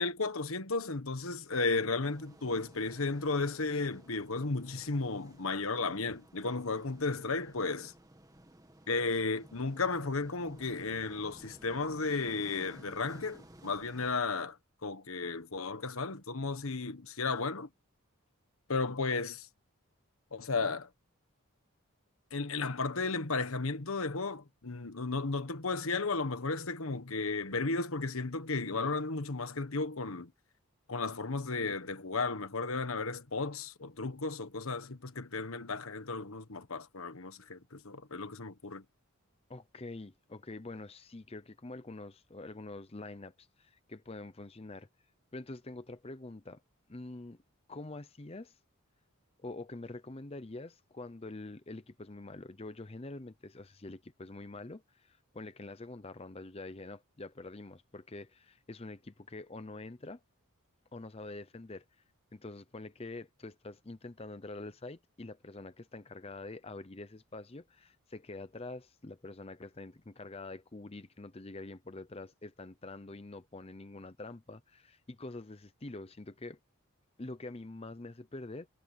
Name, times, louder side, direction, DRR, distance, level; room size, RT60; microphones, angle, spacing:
voice 1, 0.0-7.9 8.9-17.7 18.7-19.5 20.3-20.9 22.3-30.3 30.9-38.8, left 3 dB, 70° left, 1.4 m, -34 dB
sound 1, 2.0-14.2, right 1 dB, 15° right, 1.8 m, -56 dB
voice 2, 39.5-44.9 45.3-46.6 46.9-47.4 47.7-48.6 49.4-60.2 60.9-61.9 62.3-76.6 77.2-78.7, left 2 dB, 25° left, 0.7 m, -45 dB
head